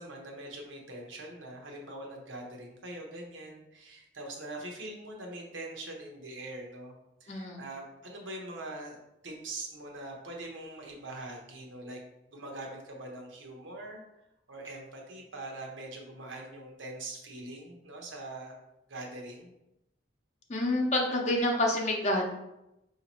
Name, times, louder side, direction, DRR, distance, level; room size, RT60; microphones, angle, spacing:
voice 1, 0.0-6.9 7.2-9.0 9.2-12.0 12.3-14.0 14.5-18.6 18.9-19.5, right 2 dB, 85° right, 1 dB, 0.9 m, -43 dB
voice 2, 7.3-7.6 20.5-22.2, left 1 dB, 35° left, 0 dB, 0.7 m, -28 dB
5.0 x 2.8 x 2.9 m, 0.89 s
head